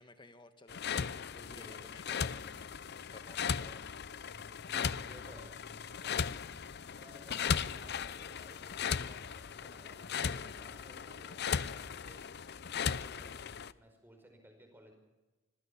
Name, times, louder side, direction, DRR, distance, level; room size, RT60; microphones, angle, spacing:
voice 1, 0.0-2.8 3.1-3.8, left 2 dB, 25° left, 9 dB, 1.5 m, -56 dB
sound 1, 0.7-13.7, left 7 dB, 55° left, 0.6 m, -37 dB
voice 2, 1.3-1.7 4.5-5.6 6.0-6.3 6.9-12.3 12.7-14.9, equal, 10° right, 4 dB, 5.1 m, -57 dB
sound 2, 2.1-13.5, left 1 dB, 85° left, 5.8 m, -61 dB
25.0 x 16.0 x 7.1 m, 1.1 s
head